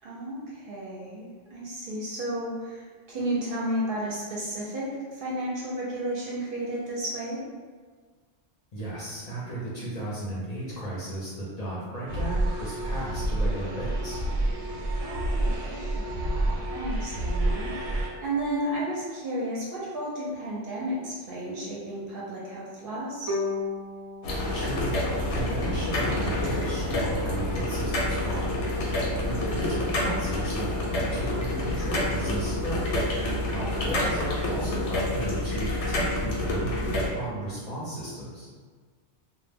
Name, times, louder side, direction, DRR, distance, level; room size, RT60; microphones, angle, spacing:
voice 1, 0.0-7.4 15.0-17.7 18.2-23.4 29.2-29.7 33.5-33.9, right 1 dB, 60° right, -5 dB, 0.7 m, -33 dB
voice 2, 8.7-14.2 24.5-24.9 25.3-28.6 29.3-32.9 33.5-38.5, right 1 dB, 45° left, -8 dB, 0.6 m, -34 dB
sound 1, 12.1-18.1, right 1 dB, 85° right, 0.9 m, -28 dB
Bowed string instrument, 23.3-26.3, left 3 dB, 25° right, 0.6 m, -35 dB
sound 2, 24.2-37.1, left 1 dB, 85° left, 0.9 m, -28 dB
2.1 x 2.1 x 3.3 m, 1.5 s
omnidirectional pair, 1.2 m